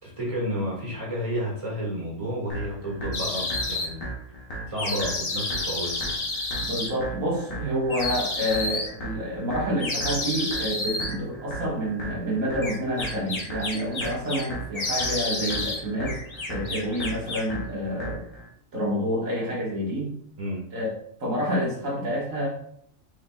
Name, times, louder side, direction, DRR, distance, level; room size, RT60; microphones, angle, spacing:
voice 1, 0.0-4.0 4.7-6.1 20.4-20.6, equal, 25° right, -5 dB, 1.9 m, -31 dB
sound 1, 2.5-18.5, right 1 dB, 80° left, 1.5 m, -37 dB
sound 2, 3.1-3.9 4.8-6.9 7.9-8.9 9.8-11.1 12.6-14.5 14.7-15.8 16.1-17.5, left 2 dB, 40° left, 0.4 m, -30 dB
voice 2, 6.6-16.2 16.5-18.3 18.7-20.1 20.7-20.9 21.2-22.5, equal, 75° right, -4 dB, 2.0 m, -28 dB
4.9 x 4.8 x 2.3 m, 0.69 s
omnidirectional pair, 1.4 m